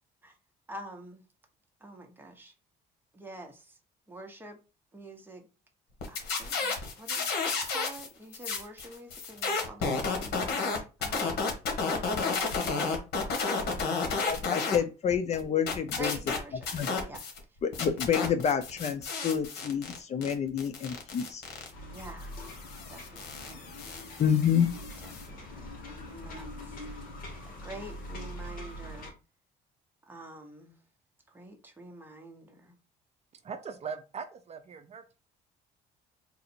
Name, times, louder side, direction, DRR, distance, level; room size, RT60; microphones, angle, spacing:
voice 1, 0.7-1.2 1.8-2.5 3.1-3.8 4.1-4.6 4.9-5.5 6.1-11.5 16.0-17.2 17.8-18.2 21.9-22.3 22.9-23.7 25.0-26.9 27.4-29.1 30.1-30.8 31.3-32.7, right 1 dB, 10° right, 1.1 m, -47 dB
sound 1, 6.0-8.1 8.3-14.8 15.1-17.4 17.7-25.3, left 4 dB, 75° left, 1.5 m, -32 dB
voice 2, 14.3-16.2 16.7-16.9 17.6-21.4 24.2-24.7, left 8 dB, 40° left, 0.5 m, -28 dB
sound 2, 21.7-29.1, left 1 dB, 55° left, 1.9 m, -43 dB
voice 3, 33.4-35.2, right 6 dB, 40° right, 0.6 m, -40 dB
4.0 x 2.5 x 4.4 m
cardioid pair, 110°, 17 cm